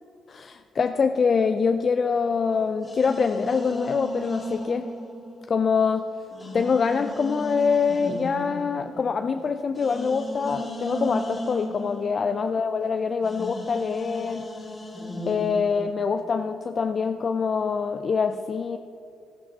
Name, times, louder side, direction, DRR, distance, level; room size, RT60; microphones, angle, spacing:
voice 1, 0.3-4.9 5.5-6.1 6.5-14.5 15.3-18.8, left 5 dB, 45° left, 8 dB, 0.3 m, -25 dB
sound 1, 2.8-5.8 6.3-12.9 13.2-15.9, left 1 dB, 25° left, 1.8 m, -36 dB
12.5 x 11.5 x 2.8 m, 2.5 s
cardioid pair, 90°, 0 cm